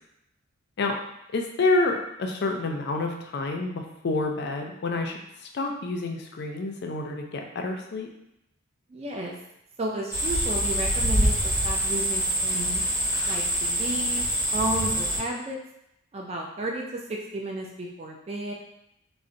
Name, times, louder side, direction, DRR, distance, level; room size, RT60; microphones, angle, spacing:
voice 1, 1.3-5.2 5.5-8.1, left 2 dB, 50° left, 2 dB, 0.4 m, -28 dB
voice 2, 8.9-9.3 9.8-11.3 11.6-12.8 13.3-14.3 14.5-15.6 16.1-18.5, right 2 dB, 30° right, 0 dB, 0.3 m, -32 dB
sound 1, 10.1-15.2, equal, 10° right, 1.1 m, -25 dB
3.8 x 2.1 x 2.5 m, 0.82 s
head